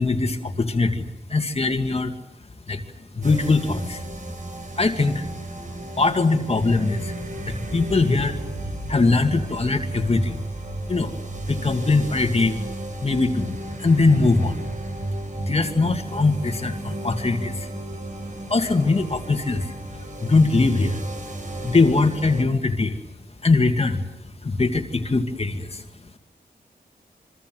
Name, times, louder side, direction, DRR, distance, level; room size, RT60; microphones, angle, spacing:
voice 1, 0.0-2.1 2.7-2.8 3.1-4.0 4.8-5.2 6.0-7.1 7.4-8.4 8.9-10.4 10.9-11.1 11.5-12.6 13.0-14.6 15.5-17.7 18.5-21.0 21.6-23.0 23.4-24.0 24.4-25.8, left 3 dB, 35° left, 5 dB, 2.3 m, -21 dB
sound 1, 3.2-22.4, right 1 dB, 50° right, 7.0 m, -33 dB
27.5 x 24.5 x 7.8 m, 0.85 s
wide cardioid pair, 115°, 17 cm